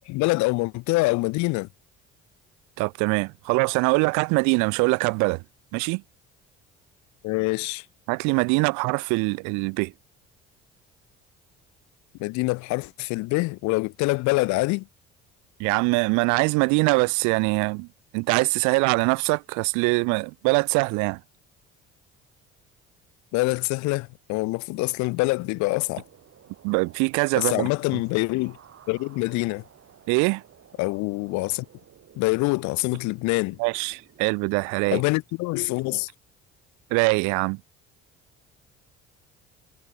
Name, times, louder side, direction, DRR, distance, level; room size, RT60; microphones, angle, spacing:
voice 1, 0.1-1.7 7.2-7.8 12.2-14.9 23.3-26.0 27.4-28.6 28.9-29.6 30.8-31.6 32.2-33.6 34.9-36.1, left 23 dB, 70° left, 0.6 m, -25 dB
voice 2, 2.8-5.4 5.7-6.0 8.1-9.9 15.6-17.9 18.1-21.2 26.6-27.7 30.1-30.4 33.6-35.0 36.9-37.6, right 30 dB, 75° right, 0.5 m, -23 dB
sound 1, 25.1-35.2, right 9 dB, 50° right, 4.3 m, -54 dB
supercardioid pair, 70°, 29 cm